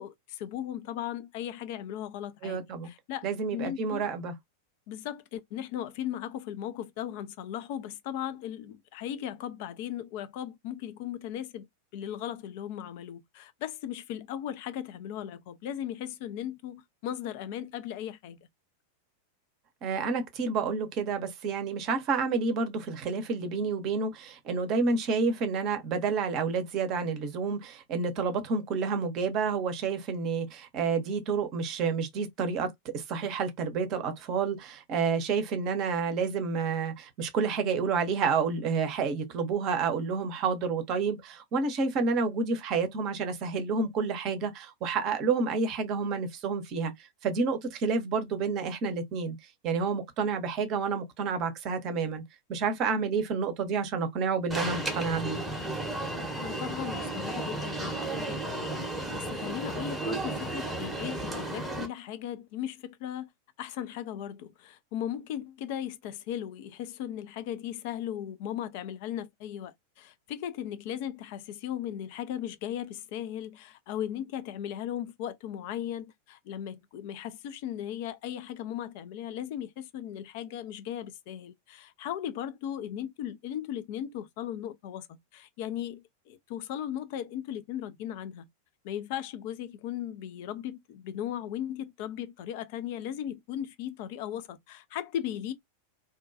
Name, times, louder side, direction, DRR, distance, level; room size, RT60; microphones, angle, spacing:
voice 1, 0.0-4.1 4.9-11.7 11.9-18.4 56.4-58.8 59.1-63.3 63.6-88.5 88.8-95.5, left 10 dB, 50° left, 0.4 m, -37 dB
voice 2, 2.4-2.9 3.2-4.3 19.8-32.7 32.9-46.9 47.2-49.4 49.6-52.2 52.5-55.4, right 5 dB, 40° right, 0.7 m, -29 dB
Alarm, 54.5-61.9, right 1 dB, 5° right, 0.8 m, -34 dB
2.5 x 2.2 x 2.4 m
figure-of-eight pair, 90°, 0 cm